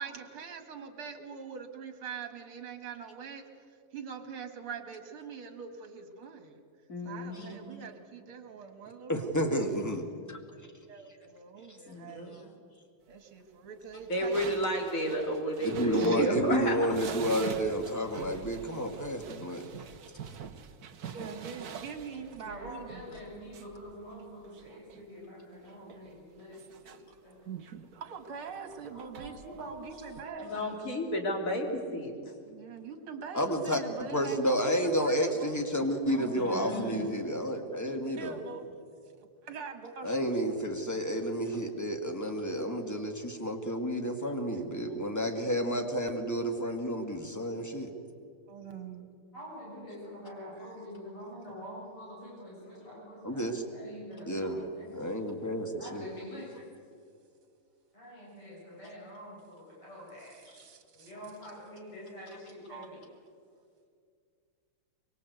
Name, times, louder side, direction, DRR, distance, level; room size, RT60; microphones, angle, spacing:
voice 1, 0.0-3.5 3.9-6.6 7.0-9.3 10.9-12.4 13.1-14.4 15.9-16.9 17.7-17.8 21.1-23.2 28.0-30.5 32.4-35.6 38.2-38.7 39.4-40.3 44.2-44.4 48.5-49.1 60.6-61.1 62.7-62.9, right 6 dB, 75° right, 7 dB, 2.8 m, -42 dB
voice 2, 6.9-7.7 11.9-12.5 14.1-16.8 30.4-32.1 36.4-37.1, equal, 35° left, 2 dB, 3.4 m, -32 dB
voice 3, 9.1-10.4 11.7-11.8 15.6-19.7 33.3-38.4 40.0-47.9 53.2-53.6 54.3-54.6 54.9-56.1, equal, 10° left, 4 dB, 1.9 m, -31 dB
sound 1, 13.9-25.0 25.6-27.0 27.4-30.2, right 7 dB, 50° right, 1.4 m, -45 dB
voice 4, 22.4-27.5 28.9-30.6 36.1-37.3 38.2-38.6 49.3-55.1 55.8-56.6 57.9-60.4 60.9-63.0, equal, 80° left, -5 dB, 8.4 m, -46 dB
24.0 x 24.0 x 8.1 m, 2.2 s
omnidirectional pair, 2.4 m